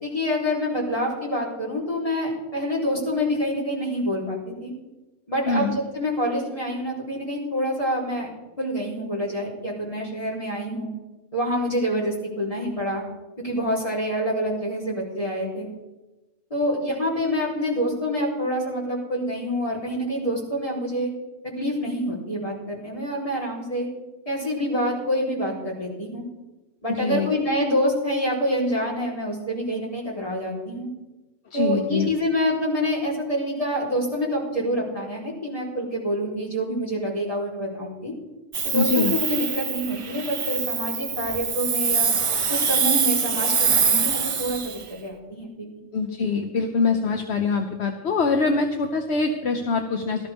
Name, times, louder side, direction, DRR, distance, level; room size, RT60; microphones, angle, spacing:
voice 1, 0.0-4.7 5.3-8.3 8.6-10.9 11.3-13.0 13.4-15.7 16.5-21.1 21.6-23.9 24.3-26.2 26.8-30.9 31.5-38.1 38.6-42.1 42.5-45.7, equal, 25° left, -5 dB, 4.1 m, -27 dB
voice 2, 5.5-5.8 26.9-27.3 31.5-32.1 38.7-39.1 45.9-50.3, left 4 dB, 60° left, 4 dB, 1.2 m, -24 dB
Hiss, 38.5-44.8, right 6 dB, 45° right, 0.4 m, -24 dB
18.0 x 13.0 x 3.6 m, 1.1 s
omnidirectional pair, 1.3 m